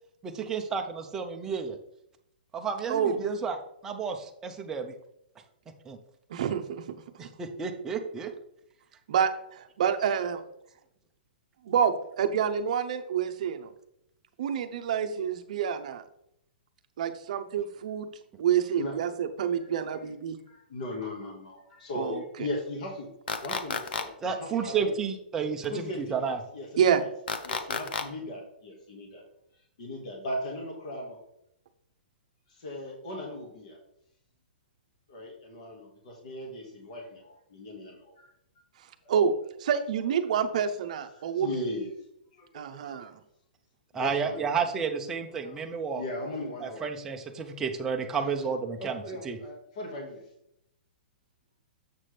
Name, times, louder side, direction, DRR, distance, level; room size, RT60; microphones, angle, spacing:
voice 1, 0.2-1.8 2.5-4.9 5.9-6.0 7.2-8.3 24.2-26.4 43.9-46.0 46.6-49.4, right 6 dB, 10° right, 3 dB, 0.5 m, -31 dB
voice 2, 2.9-3.2 6.3-6.8 9.1-10.4 11.6-13.7 14.4-16.0 17.0-18.1 18.4-20.4 21.9-22.2 26.8-27.0 39.1-39.3 39.6-41.5 42.5-43.1, right 8 dB, 45° right, 8 dB, 0.7 m, -27 dB
voice 3, 20.5-23.1 23.4-25.0 25.7-26.7 27.5-29.2 29.8-31.2 32.5-33.8 35.1-38.3 41.2-41.9 42.3-43.1 43.9-44.5 45.4-45.7 45.9-46.8 48.1-48.5 48.8-50.2, left 1 dB, 45° left, -1 dB, 1.7 m, -38 dB
sound 1, 23.3-24.0 27.3-28.0, left 6 dB, 70° left, 0.8 m, -31 dB
7.5 x 5.9 x 3.3 m, 0.76 s
hypercardioid pair, 175°, 5 cm